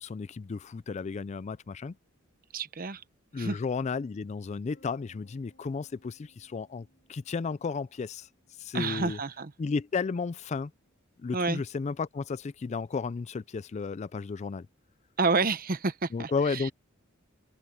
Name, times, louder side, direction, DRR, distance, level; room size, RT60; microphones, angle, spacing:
voice 1, 0.0-2.0 3.3-8.3 8.6-9.2 9.6-10.7 11.2-14.7 16.1-16.7, left 4 dB, 35° left, 0.3 m, -33 dB
voice 2, 2.5-3.0 3.4-3.6 8.7-9.5 11.3-11.6 15.2-16.7, right 3 dB, 45° right, 1.0 m, -29 dB
Bass guitar, 4.7-11.0, equal, 55° left, 5.3 m, -67 dB
open air
head